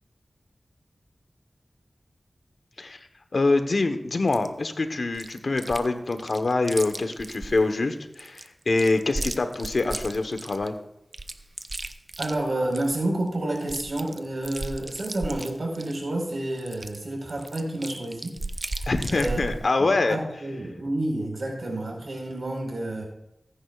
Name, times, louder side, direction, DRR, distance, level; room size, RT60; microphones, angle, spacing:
voice 1, 3.3-10.7 18.9-20.2, left 3 dB, 70° left, 8 dB, 1.0 m, -25 dB
Chewing mastication, 4.3-4.5 5.1-5.9 6.1-7.6 8.1-10.7 11.1-13.0 13.3-13.4 13.6-16.0 16.6-19.6, right 2 dB, 50° right, 0.7 m, -35 dB
voice 2, 12.2-18.4 18.7-19.4 19.8-23.0, right 1 dB, 70° right, 0 dB, 4.3 m, -30 dB
20.0 x 9.9 x 2.4 m, 0.83 s
wide cardioid pair, 55°, 0 cm